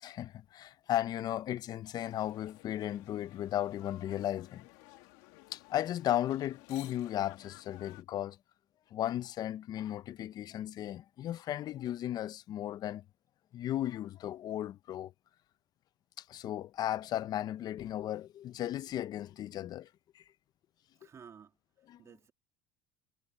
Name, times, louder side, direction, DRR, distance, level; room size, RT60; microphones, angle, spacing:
voice 1, 0.0-4.7 5.5-8.4 8.9-13.0 13.5-15.1 16.2-19.9 20.1-20.2 21.9-22.0, left 12 dB, 45° left, 0.7 m, -35 dB
sound 1, 2.0-8.0, left 22 dB, 80° left, 2.1 m, -56 dB
voice 2, 21.0-22.3, right 7 dB, 30° right, 3.0 m, -55 dB
supercardioid pair, 115°, 9 cm